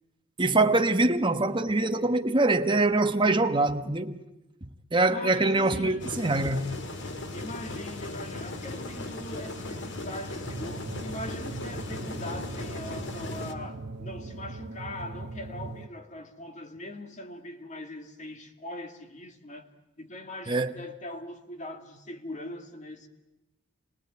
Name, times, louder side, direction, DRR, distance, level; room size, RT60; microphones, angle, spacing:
voice 1, 0.4-4.2 4.6-6.7 20.5-20.7, right 2 dB, 25° right, 1.2 m, -24 dB
voice 2, 5.1-6.1 7.3-19.7 20.0-23.1, left 1 dB, 40° left, 2.2 m, -41 dB
sound 1, 6.0-13.5, left 2 dB, 65° left, 2.1 m, -37 dB
sound 2, 10.4-15.9, right 2 dB, 60° right, 0.8 m, -40 dB
28.5 x 19.5 x 9.5 m
head